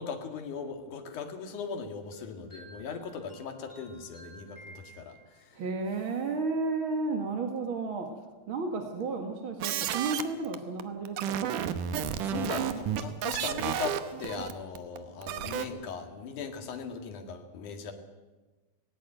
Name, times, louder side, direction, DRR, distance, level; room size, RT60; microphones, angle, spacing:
voice 1, 0.0-5.6 12.2-17.9, left 5 dB, 70° left, 5 dB, 3.3 m, -39 dB
sound 1, 2.1-5.6, right 2 dB, 15° left, 8.2 m, -53 dB
voice 2, 5.5-8.1 8.5-11.6, right 3 dB, 45° right, 4 dB, 2.2 m, -32 dB
sound 2, 9.6-15.7, right 9 dB, 80° right, 2.5 m, -32 dB
18.5 x 18.0 x 9.1 m, 1.2 s
omnidirectional pair, 3.7 m